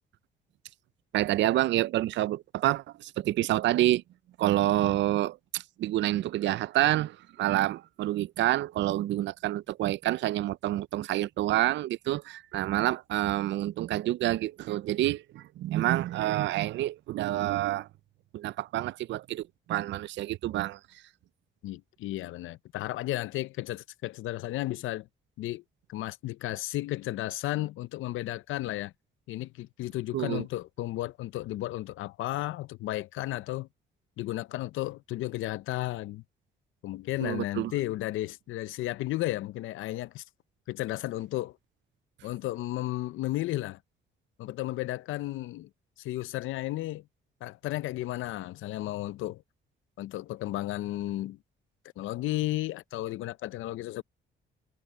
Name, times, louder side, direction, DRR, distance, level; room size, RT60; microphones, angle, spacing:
voice 1, 1.1-4.0 4.4-17.9 18.3-20.8 30.1-30.4 37.2-37.7, right 15 dB, 65° right, 0.4 m, -28 dB
voice 2, 21.6-25.1 25.4-25.6 25.9-28.9 29.3-33.7 34.2-36.2 36.8-40.2 40.7-41.6 42.2-43.8 44.4-45.7 46.0-47.0 47.4-49.4 50.0-51.4 52.0-54.0, left 16 dB, 85° left, 0.6 m, -33 dB
cardioid pair, 90°, 20 cm